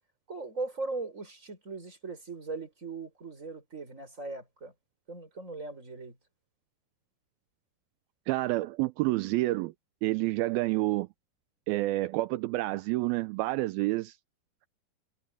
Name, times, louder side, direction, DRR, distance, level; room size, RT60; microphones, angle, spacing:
voice 1, 0.3-4.7 5.1-6.2, right 3 dB, 20° right, 6.0 m, -39 dB
voice 2, 8.3-9.7 10.0-11.1 11.7-14.1, right 19 dB, 80° right, 2.4 m, -28 dB
omnidirectional pair, 4.4 m